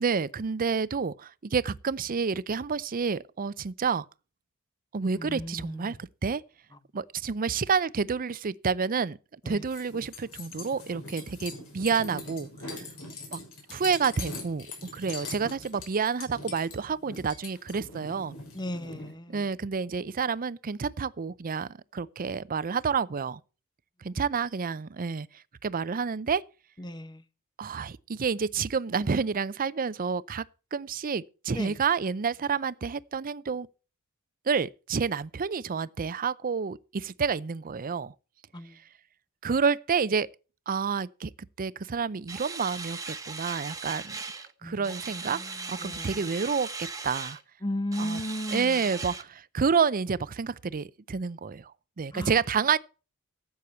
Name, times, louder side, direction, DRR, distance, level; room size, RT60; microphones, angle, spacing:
voice 1, 0.0-4.1 4.9-6.4 6.9-9.2 9.5-12.8 13.3-13.4 13.7-14.7 14.9-18.3 19.3-23.4 24.0-25.3 25.6-26.4 27.6-30.5 30.7-33.7 34.5-38.1 39.4-40.3 40.7-41.3 41.6-44.2 44.6-45.4 45.7-46.7 47.0-47.4 48.0-48.2 48.5-51.7 52.0-52.8, right 5 dB, 40° right, 0.5 m, -29 dB
voice 2, 5.2-5.7 9.5-9.6 18.5-19.4 26.8-27.2 31.5-31.7 38.5-38.7 44.6-44.8 45.8-46.1 47.6-48.7 52.1-52.3, left 1 dB, 20° left, 0.8 m, -34 dB
sound 1, 9.6-19.1, left 3 dB, 80° left, 6.4 m, -42 dB
sound 2, 42.3-44.5 44.8-47.4 47.9-49.2, right 4 dB, 15° right, 1.1 m, -38 dB
13.5 x 8.4 x 4.4 m
head